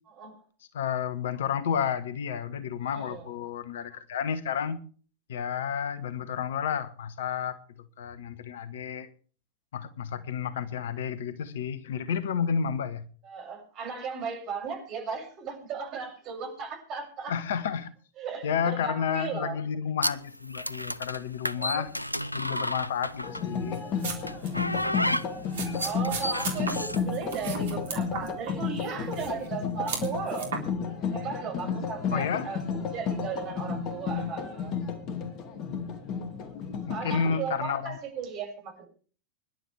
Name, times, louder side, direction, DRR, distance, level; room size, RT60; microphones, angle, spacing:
voice 1, 0.7-4.8 5.3-9.1 9.7-13.0 17.3-17.9 18.4-21.9 22.3-23.8 32.1-32.5 36.9-38.0, left 7 dB, 60° left, 1.2 m, -31 dB
voice 2, 2.8-3.3 13.2-17.3 18.2-19.6 21.6-21.9 24.4-25.1 25.7-30.6 31.1-34.7 36.9-38.8, right 6 dB, 35° right, 6.9 m, -36 dB
sound 1, 20.0-23.6 24.3-27.0, left 1 dB, 85° left, 0.5 m, -32 dB
sound 2, 23.2-37.4, left 6 dB, 35° left, 2.3 m, -32 dB
sound 3, 23.7-24.5 24.7-24.9 25.5-28.5 28.8-29.5 29.9-30.6, right 5 dB, 60° right, 3.9 m, -36 dB
25.0 x 11.0 x 3.4 m
figure-of-eight pair, 90°, 0 cm